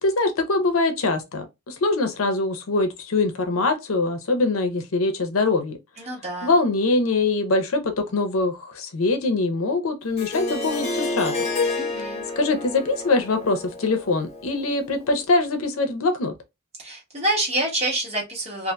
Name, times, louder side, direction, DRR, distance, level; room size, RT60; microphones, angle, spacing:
voice 1, 0.0-5.8 6.4-11.3 12.4-16.3, left 3 dB, 80° left, 0.6 m, -23 dB
voice 2, 6.0-6.5 11.7-12.3 16.8-18.7, right 1 dB, 30° right, 1.1 m, -27 dB
Harp, 10.2-15.1, left 3 dB, 30° left, 0.8 m, -30 dB
2.6 x 2.4 x 2.2 m
head